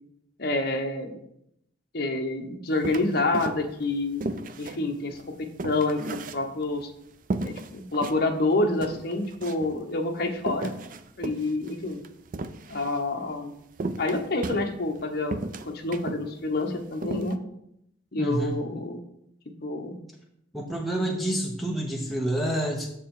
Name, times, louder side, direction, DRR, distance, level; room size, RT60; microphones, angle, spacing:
voice 1, 0.4-1.2 1.9-4.2 4.6-6.9 7.4-10.7 11.2-12.0 12.7-13.5 14.0-17.4 18.1-19.0 19.6-20.0, left 2 dB, 50° left, 3 dB, 0.9 m, -28 dB
sound 1, 2.8-3.8 4.2-6.8 7.3-8.2 8.5-8.6 8.8-9.8 10.4-13.0 13.8-15.0 15.3-16.2 16.6-16.7 17.0-17.3, right 2 dB, 45° right, 0.4 m, -34 dB
voice 2, 18.2-18.6 20.5-22.9, right 1 dB, ahead, -1 dB, 0.6 m, -28 dB
6.8 x 6.5 x 3.7 m, 0.77 s
head